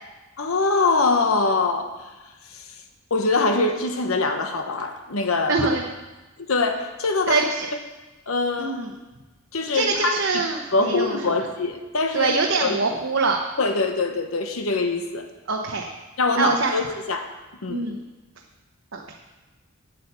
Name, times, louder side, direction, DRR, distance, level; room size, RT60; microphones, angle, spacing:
voice 1, 0.4-2.1 2.5-2.6 3.1-5.9 6.4-7.5 8.3-8.8 9.5-10.4 10.7-12.3 12.6-12.8 13.6-15.3 16.2-17.3 17.6-17.9, left 3 dB, 90° left, 5 dB, 1.1 m, -23 dB
voice 2, 5.5-5.9 7.3-7.7 8.6-8.9 9.7-11.2 12.1-13.4 15.5-15.9 16.4-16.7 17.7-18.0 18.9-19.1, right 3 dB, 65° right, 1 dB, 0.9 m, -24 dB
8.7 x 8.5 x 6.8 m, 1.1 s
head